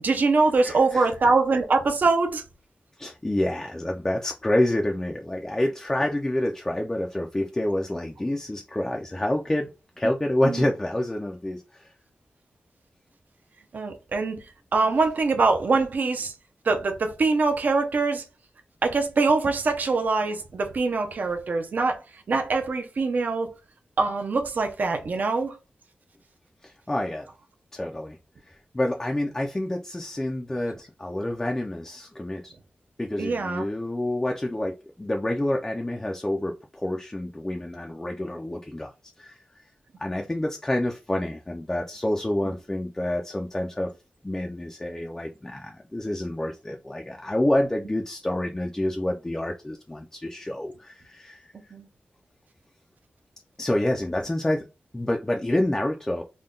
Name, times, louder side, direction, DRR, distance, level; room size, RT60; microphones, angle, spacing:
voice 1, 0.0-2.4 10.4-10.6 13.7-14.4 14.7-16.3 16.6-18.3 18.8-23.5 24.0-25.6 33.2-33.6 51.7-51.9, right 3 dB, 55° right, 0.6 m, -23 dB
voice 2, 0.6-1.1 3.0-9.7 10.0-11.9 26.6-27.3 27.7-28.2 28.4-32.5 33.0-38.9 39.2-39.4 40.0-43.9 44.2-51.7 53.6-54.7 54.9-56.2, left 1 dB, 15° left, 0.4 m, -28 dB
3.7 x 2.2 x 3.7 m
wide cardioid pair, 180°, 4 cm